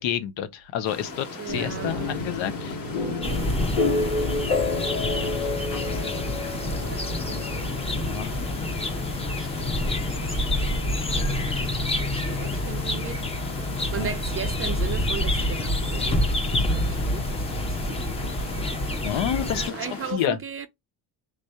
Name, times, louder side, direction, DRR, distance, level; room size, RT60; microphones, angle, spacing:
voice 1, 0.0-2.8 8.1-8.3 13.9-14.1 19.0-20.4, left 10 dB, 65° left, 0.8 m, -29 dB
Stream, 0.8-20.1, left 3 dB, 45° left, 1.3 m, -39 dB
voice 2, 1.4-2.2 5.8-7.8 8.6-13.2 13.5-13.6 13.9-18.9 19.3-20.7, right 7 dB, 30° right, 0.4 m, -38 dB
sound 1, 1.5-15.3, left 3 dB, 85° left, 2.2 m, -31 dB
sound 2, 3.2-19.7, left 1 dB, 10° left, 0.7 m, -27 dB
3.3 x 2.6 x 3.4 m
supercardioid pair, 75°, 49 cm